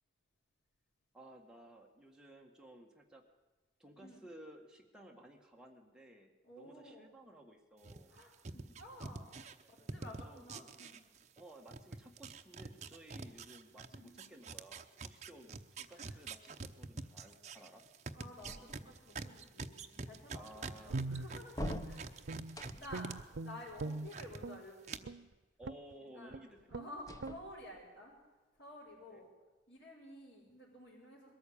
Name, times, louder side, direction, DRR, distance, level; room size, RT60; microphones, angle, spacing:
voice 1, 1.1-3.2 3.8-8.1 9.6-10.6 11.4-17.8 20.3-21.0 21.5-22.1 23.8-24.0 25.6-26.6 29.1-29.2, right 1 dB, 5° right, 0 dB, 1.7 m, -56 dB
voice 2, 6.4-7.1 8.1-9.3 9.7-11.0 13.9-14.3 15.9-16.2 18.1-22.3 22.6-25.2 26.1-26.4 26.7-28.2 28.6-29.3 29.7-31.3, left 1 dB, 70° left, -6 dB, 5.5 m, -53 dB
sound 1, 7.8-11.4 11.7-23.2 23.5-24.4 24.8-25.0, right 4 dB, 40° right, 0.9 m, -46 dB
sound 2, 18.4-19.2 21.5-23.1 27.0-28.0, equal, 20° left, 0.8 m, -45 dB
Guitar, 20.9-22.6 22.9-24.6 25.0-25.3 25.6-25.9 26.3-26.4 26.7-26.9 27.2-27.4, right 3 dB, 90° right, 0.6 m, -42 dB
22.0 x 13.5 x 8.7 m, 1.2 s
head